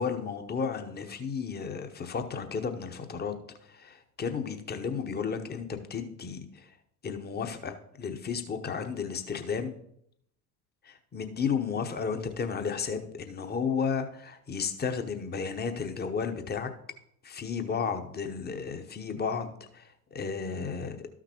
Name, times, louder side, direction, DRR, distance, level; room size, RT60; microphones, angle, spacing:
voice 1, 0.0-3.3 3.7-6.7 7.0-9.7 10.8-16.7 17.2-21.1, left 6 dB, 20° left, 8 dB, 0.9 m, -33 dB
13.0 x 5.9 x 3.0 m, 0.72 s
figure-of-eight pair, 70°, 49 cm